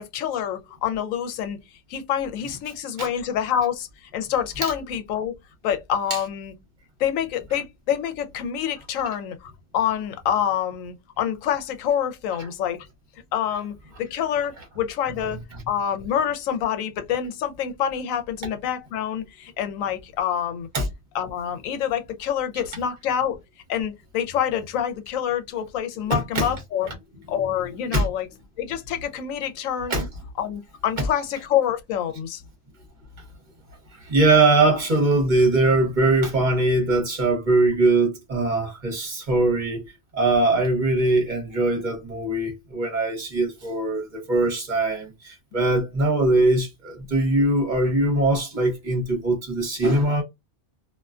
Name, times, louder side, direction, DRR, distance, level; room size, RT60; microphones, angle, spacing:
voice 1, 0.0-1.6 1.9-5.3 5.6-6.5 7.0-12.9 13.3-15.4 15.7-20.7 21.1-23.4 23.7-26.9 27.3-28.3 28.6-30.0 30.4-32.4 45.7-45.8, left 9 dB, 80° left, 1.0 m, -27 dB
voice 2, 26.1-26.5 27.9-28.0 29.9-30.0 34.0-50.2, right 2 dB, 40° right, 1.0 m, -21 dB
2.4 x 2.1 x 2.4 m
omnidirectional pair, 1.4 m